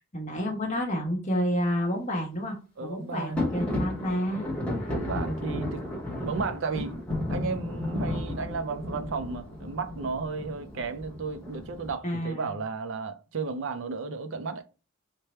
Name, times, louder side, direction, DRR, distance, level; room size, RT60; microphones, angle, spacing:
voice 1, 0.0-4.5 4.8-5.0 12.0-12.5, equal, 35° left, 1.0 m, -30 dB
voice 2, 2.8-3.4 4.9-5.8 6.2-14.6, right 4 dB, 65° right, 0.5 m, -33 dB
sound 1, 3.4-11.9, left 1 dB, 5° left, 0.9 m, -33 dB
3.3 x 2.2 x 4.1 m
head